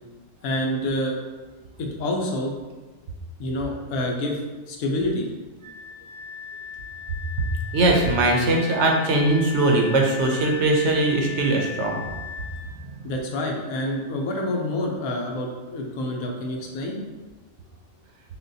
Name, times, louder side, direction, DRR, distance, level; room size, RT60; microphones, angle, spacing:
voice 1, 0.4-1.3 1.8-2.5 3.4-4.4 4.7-5.3 13.0-17.0, left 1 dB, 85° left, 0 dB, 1.1 m, -27 dB
Wind instrument woodwind instrument, 5.6-12.7, left 7 dB, 5° left, 0.5 m, -37 dB
voice 2, 7.7-12.0, right 2 dB, 65° right, 0 dB, 0.8 m, -20 dB
6.1 x 2.3 x 2.7 m, 1.2 s
omnidirectional pair, 1.4 m